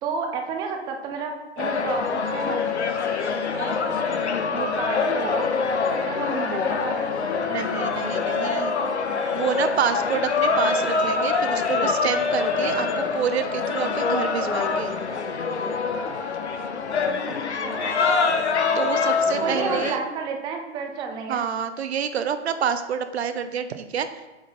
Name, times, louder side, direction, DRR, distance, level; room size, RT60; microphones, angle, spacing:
voice 1, 0.0-2.6 3.5-3.8 4.5-5.5 5.9-7.1 17.3-18.0 19.4-21.5, right 5 dB, 15° right, 3 dB, 0.4 m, -31 dB
sound 1, 1.6-19.9, left 4 dB, 75° left, 0.8 m, -25 dB
voice 2, 7.5-8.7 9.3-14.9 18.7-20.0 21.3-24.1, right 7 dB, 70° right, 10 dB, 0.6 m, -28 dB
7.9 x 3.7 x 3.9 m, 1.2 s
figure-of-eight pair, 110°, 34 cm